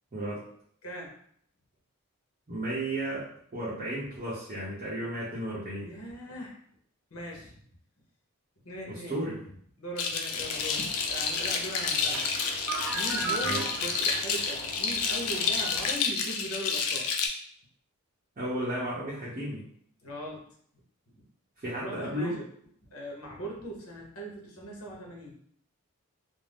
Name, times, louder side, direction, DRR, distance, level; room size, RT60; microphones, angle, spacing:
voice 1, 0.1-0.4 2.5-3.3 3.5-5.9 8.9-9.4 13.4-13.7 18.4-19.6 21.6-22.4, right 1 dB, 35° right, -9 dB, 0.7 m, -33 dB
voice 2, 0.8-1.1 5.8-6.5 7.1-7.6 8.6-9.2 9.8-12.4 12.9-17.1 20.0-20.4 21.2-21.3 21.8-22.4 22.9-25.5, right 1 dB, 65° left, -1 dB, 0.9 m, -40 dB
sound 1, 10.0-17.3, left 5 dB, 85° left, 0.4 m, -30 dB
sound 2, 10.4-15.9, right 3 dB, 75° right, 0.8 m, -38 dB
2.5 x 2.0 x 3.3 m, 0.63 s
head